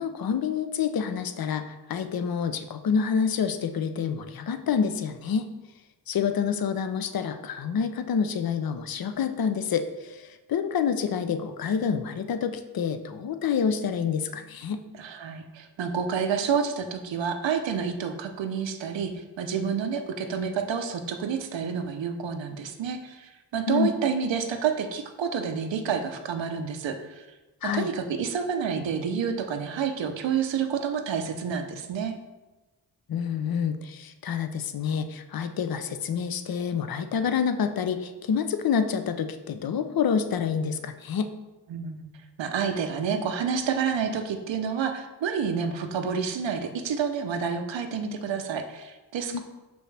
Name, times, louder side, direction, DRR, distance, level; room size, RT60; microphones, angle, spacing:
voice 1, 0.0-5.5 6.1-14.8 23.7-23.9 27.6-27.9 33.1-41.3 49.3-49.4, left 7 dB, 55° left, 9 dB, 0.6 m, -28 dB
voice 2, 15.0-27.3 27.6-32.2 41.7-42.1 42.4-49.4, right 6 dB, 90° right, 7 dB, 0.7 m, -29 dB
6.2 x 5.2 x 3.3 m, 1.1 s
cardioid pair, 70°, 43 cm